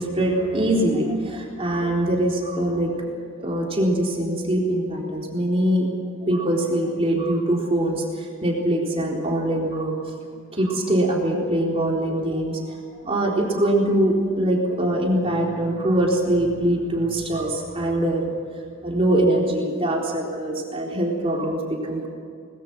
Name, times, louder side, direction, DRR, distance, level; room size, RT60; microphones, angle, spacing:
voice 1, 0.0-3.1 3.4-5.9 6.3-9.9 10.5-12.8 13.0-18.3 18.8-22.1, right 1 dB, 30° right, -2 dB, 3.8 m, -23 dB
23.5 x 21.5 x 6.1 m, 2.2 s
head